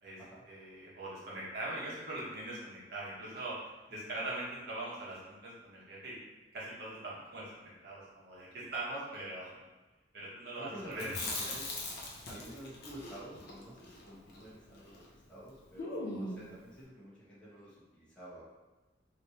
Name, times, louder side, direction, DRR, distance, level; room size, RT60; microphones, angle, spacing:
voice 1, 0.5-3.6 3.9-6.2 6.5-9.6 10.1-11.1, right 2 dB, 60° right, -7 dB, 1.2 m, -42 dB
voice 2, 10.6-11.7 12.3-18.4, right 1 dB, 5° left, -11 dB, 1.3 m, -50 dB
Chewing mastication, 10.9-15.1 15.4-15.5 15.8-16.5, left 2 dB, 60° left, 0.7 m, -41 dB
3.2 x 2.9 x 2.8 m, 1.2 s
head